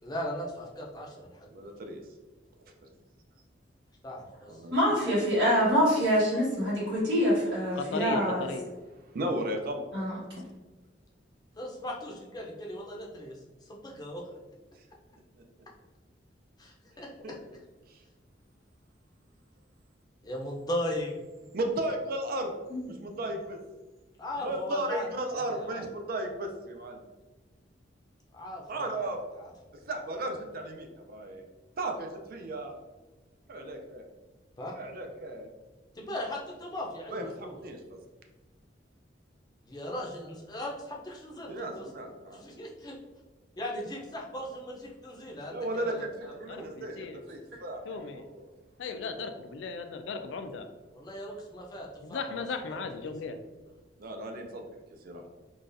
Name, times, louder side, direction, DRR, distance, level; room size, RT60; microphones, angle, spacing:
voice 1, 0.0-1.5 4.0-4.6 11.5-14.2 16.6-17.4 20.2-21.1 24.2-25.1 25.3-25.9 28.3-29.5 34.6-34.7 35.9-37.6 39.6-41.8 42.3-43.0 43.6-46.0 46.6-46.7 50.9-52.8, left 1 dB, 20° left, -2 dB, 0.5 m, -38 dB
voice 2, 1.5-2.0 2.6-2.9 4.5-5.0 9.0-9.9 15.4-15.5 17.2-17.3 17.9-18.0 21.5-22.5 22.8-23.6 24.4-27.0 28.7-29.2 29.9-31.4 31.8-32.8 33.5-34.1 34.7-35.5 37.1-38.0 41.5-42.5 45.5-47.0 47.3-48.4 54.0-54.6 55.0-55.2, right 1 dB, 55° right, 4 dB, 0.5 m, -35 dB
voice 3, 4.7-8.5 9.9-10.5 22.7-23.1, equal, 85° right, -8 dB, 1.4 m, -26 dB
voice 4, 7.8-8.6 46.5-47.2 47.9-48.3 48.8-50.7 52.0-53.4, left 4 dB, 90° left, 8 dB, 0.3 m, -36 dB
3.8 x 2.3 x 2.5 m, 1.2 s
head